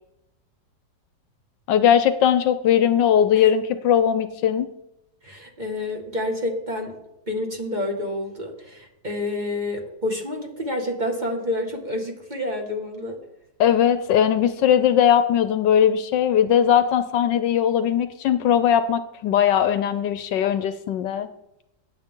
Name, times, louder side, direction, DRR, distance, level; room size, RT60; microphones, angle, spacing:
voice 1, 1.7-4.7 13.6-21.3, left 9 dB, 75° left, 12 dB, 1.3 m, -19 dB
voice 2, 5.2-6.9 7.3-13.2, left 1 dB, 25° right, 1 dB, 1.9 m, -28 dB
19.5 x 7.7 x 3.7 m, 0.86 s
omnidirectional pair, 2.0 m